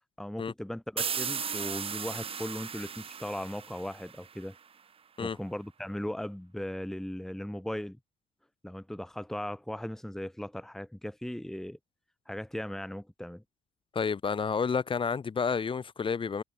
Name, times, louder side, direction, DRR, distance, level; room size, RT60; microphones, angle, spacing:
voice 1, 0.2-4.5 5.2-8.0 8.6-11.8 12.3-13.4, left 1 dB, ahead, 1.6 m, -38 dB
sound 1, 1.0-4.6, right 7 dB, 35° right, 1.2 m, -36 dB
voice 2, 13.9-16.4, left 5 dB, 30° left, 1.9 m, -30 dB
cardioid pair, 110°, 17 cm